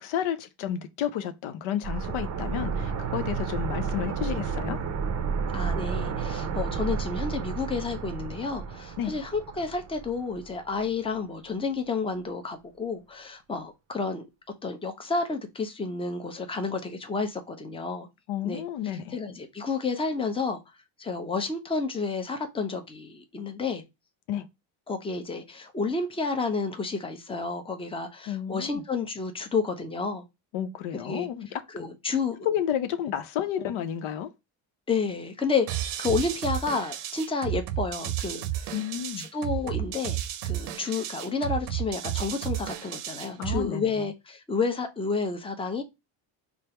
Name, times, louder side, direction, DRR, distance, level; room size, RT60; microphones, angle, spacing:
voice 1, 0.0-4.8 9.0-9.1 18.3-19.2 24.3-24.5 28.3-28.8 30.5-31.9 32.4-34.3 38.7-39.3 43.4-44.1, left 10 dB, 75° left, 0.7 m, -31 dB
sound 1, 1.8-10.6 10.8-10.9, right 5 dB, 35° right, 0.6 m, -31 dB
voice 2, 5.5-14.2 14.6-18.1 18.4-18.6 19.1-20.6 21.0-23.8 24.9-30.2 31.0-31.3 31.7-32.4 34.9-38.7 39.3-40.2 40.4-45.8, left 4 dB, 10° left, 0.7 m, -30 dB
sound 2, 35.7-43.7, right 12 dB, 90° right, 0.7 m, -32 dB
3.3 x 2.1 x 4.2 m
supercardioid pair, 85°, 49 cm